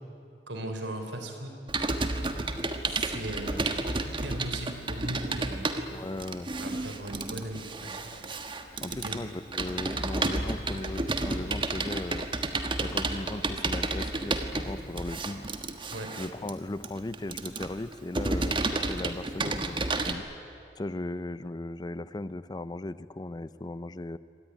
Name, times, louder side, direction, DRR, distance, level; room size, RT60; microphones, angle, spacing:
voice 1, 0.5-1.5 2.9-3.8 4.0-5.7 6.6-8.3 8.9-9.2 15.9-16.1, right 1 dB, 85° right, 5 dB, 3.8 m, -38 dB
Computer keyboard, 1.7-20.1, right 2 dB, 30° right, 1.4 m, -31 dB
voice 2, 5.9-6.5 8.8-12.3 12.8-15.5 16.2-20.2 20.8-24.2, left 2 dB, 25° left, 15 dB, 0.5 m, -37 dB
25.0 x 18.0 x 10.0 m, 2.5 s
head